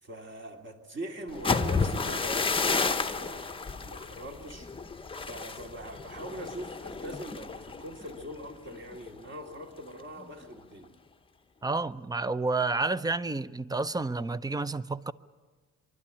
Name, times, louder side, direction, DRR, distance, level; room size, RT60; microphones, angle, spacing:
voice 1, 0.0-4.7 5.3-10.9, right 1 dB, 40° right, 2.6 m, -42 dB
sound 1, 1.3-9.1 9.5-9.8 10.2-10.6, left 4 dB, 20° left, 0.8 m, -32 dB
voice 2, 11.6-15.1, right 3 dB, 15° right, 0.6 m, -30 dB
25.0 x 12.0 x 9.9 m
cardioid pair, 90°, 30 cm